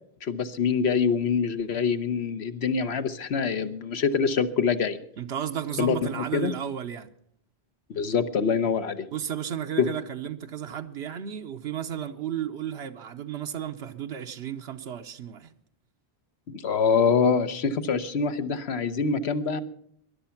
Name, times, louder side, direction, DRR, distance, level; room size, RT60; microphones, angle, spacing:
voice 1, 0.2-5.0 5.8-6.5 7.9-9.1 9.8-9.9 16.5-19.6, left 6 dB, 85° left, 1.2 m, -25 dB
voice 2, 5.2-7.1 9.1-15.5, right 9 dB, 90° right, 1.1 m, -33 dB
19.5 x 11.5 x 5.8 m
omnidirectional pair, 1.1 m